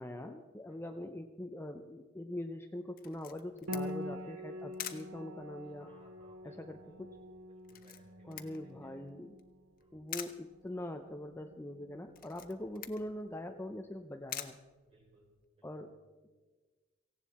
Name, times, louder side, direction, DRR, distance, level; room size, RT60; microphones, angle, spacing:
voice 1, 0.0-5.9 6.4-7.1 8.3-9.3 9.9-14.6 15.6-15.9, left 1 dB, 10° left, 6 dB, 0.6 m, -43 dB
voice 2, 0.7-1.0 5.6-9.1 9.8-10.3 14.8-16.0, right 1 dB, 30° right, -1 dB, 4.6 m, -65 dB
Camera, 3.0-15.5, left 11 dB, 45° left, 1.0 m, -48 dB
Piano, 3.7-13.0, equal, 80° right, 1.2 m, -46 dB
17.5 x 16.5 x 4.2 m, 1.4 s
head